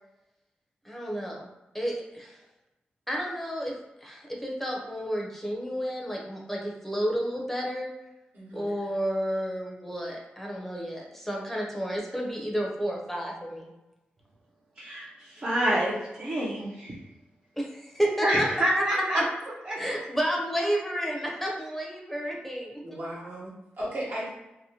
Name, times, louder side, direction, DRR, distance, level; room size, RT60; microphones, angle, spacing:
voice 1, 0.8-1.5 1.7-2.4 3.1-7.9 8.5-13.7 17.6-18.8 19.1-19.2 19.8-23.0, equal, 5° left, -2 dB, 0.7 m, -31 dB
voice 2, 8.3-8.7 22.8-24.3, right 1 dB, 70° right, -7 dB, 1.2 m, -36 dB
voice 3, 14.8-17.0 18.2-19.2 19.7-19.8, right 1 dB, 45° right, -7 dB, 0.7 m, -27 dB
2.8 x 2.0 x 2.8 m, 0.98 s
cardioid pair, 55°, 4 cm